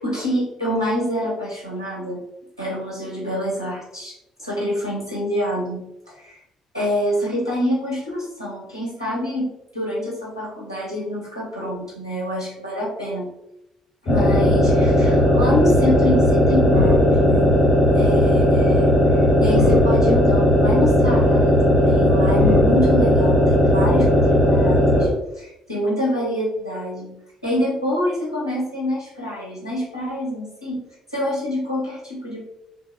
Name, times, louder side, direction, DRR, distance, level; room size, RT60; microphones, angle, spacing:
voice 1, 0.0-2.2 2.6-4.1 4.4-6.4 6.7-13.3 14.0-17.6 17.9-25.1 25.4-30.8 31.1-32.5, equal, 90° left, -5 dB, 0.7 m, -26 dB
sound 1, 14.1-25.1, equal, 55° left, 1.2 m, -16 dB
2.6 x 2.6 x 2.7 m, 0.85 s
figure-of-eight pair, 45°, 2 cm